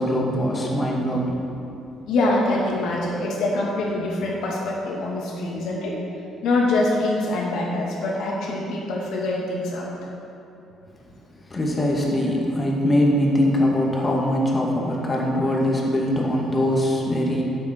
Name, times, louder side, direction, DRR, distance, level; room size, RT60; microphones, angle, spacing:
voice 1, 0.0-1.4 11.5-17.4, left 1 dB, 25° left, -2 dB, 2.2 m, -22 dB
voice 2, 2.1-6.0 6.4-9.9, left 2 dB, 75° left, -3 dB, 2.4 m, -24 dB
12.0 x 7.9 x 4.7 m, 2.8 s
cardioid pair, 85°, 0 cm